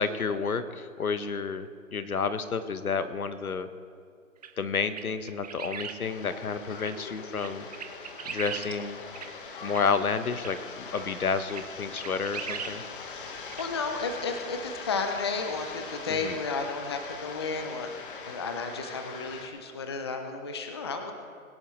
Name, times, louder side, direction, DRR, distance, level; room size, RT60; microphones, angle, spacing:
voice 1, 0.0-3.7 4.6-7.7 8.3-9.0 9.6-10.6 10.9-12.8 16.1-16.4, left 5 dB, 90° left, 11 dB, 1.2 m, -30 dB
sound 1, 4.4-4.5 4.9-6.0 6.8-6.9 7.4-8.7 9.1-9.3 9.7-9.8 10.4-10.5 11.0-11.1 11.3-11.6 12.0-12.7 13.0-13.1 13.5-13.6, right 7 dB, 30° right, 0.6 m, -38 dB
sound 2, 6.0-19.5, left 5 dB, 40° left, 1.3 m, -42 dB
voice 2, 13.6-17.9 18.3-21.1, left 4 dB, 20° left, 6 dB, 0.5 m, -33 dB
21.5 x 10.5 x 3.1 m, 2.2 s
hypercardioid pair, 150°, 42 cm